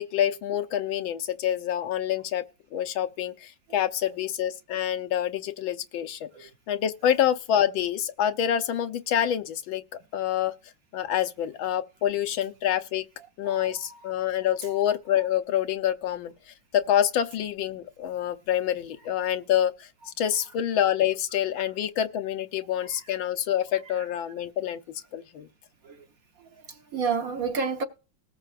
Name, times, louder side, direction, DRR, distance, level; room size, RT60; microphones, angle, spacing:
voice 1, 0.0-2.4 2.7-9.8 10.1-10.5 10.9-13.0 13.4-16.3 16.7-19.9 20.2-24.8 25.1-25.5, left 10 dB, 85° left, 1.6 m, -27 dB
voice 2, 13.4-14.1 14.7-14.8 24.0-24.1 25.8-26.0 26.4-27.8, right 5 dB, 55° right, 1.2 m, -31 dB
19.5 x 6.9 x 2.5 m
omnidirectional pair, 2.1 m